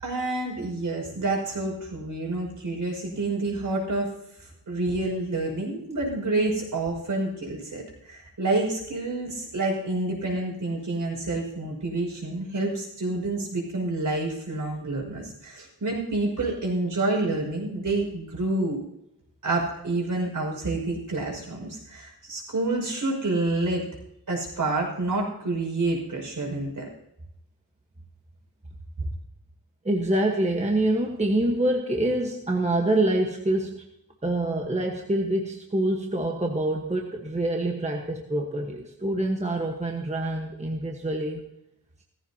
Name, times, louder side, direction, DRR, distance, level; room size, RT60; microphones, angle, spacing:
voice 1, 0.0-4.1 4.4-18.8 19.4-23.8 24.3-26.9, right 2 dB, 55° right, 0 dB, 5.8 m, -28 dB
voice 2, 29.8-33.8 34.2-41.4, right 1 dB, 20° right, 1 dB, 1.3 m, -26 dB
17.5 x 15.0 x 2.9 m, 0.80 s
wide cardioid pair, 130°, 36 cm